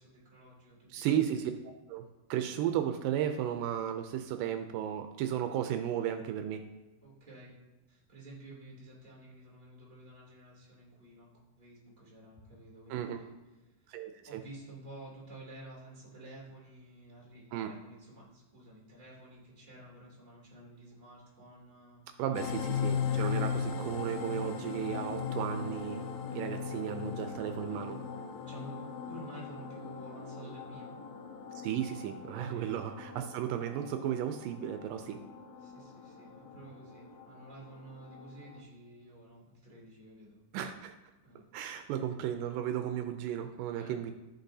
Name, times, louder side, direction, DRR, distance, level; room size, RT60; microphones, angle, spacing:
voice 1, 0.0-1.4 7.0-7.5 7.9-11.3 11.6-13.3 13.6-13.9 14.3-22.6 23.3-23.6 28.5-31.0 32.5-32.7 35.0-35.2 35.6-40.4 41.2-41.4 41.7-41.9 43.7-43.9, right 1 dB, 15° right, -6 dB, 2.3 m, -51 dB
voice 2, 0.9-1.5 1.9-6.7 12.9-13.2 13.9-14.4 17.5-17.7 22.2-26.0 26.3-28.0 31.6-35.2 40.5-40.9 41.5-44.1, right 10 dB, 85° right, 6 dB, 2.2 m, -34 dB
sound 1, 22.3-38.6, left 6 dB, 90° left, 2.7 m, -39 dB
14.5 x 5.2 x 2.7 m, 1.1 s
omnidirectional pair, 4.0 m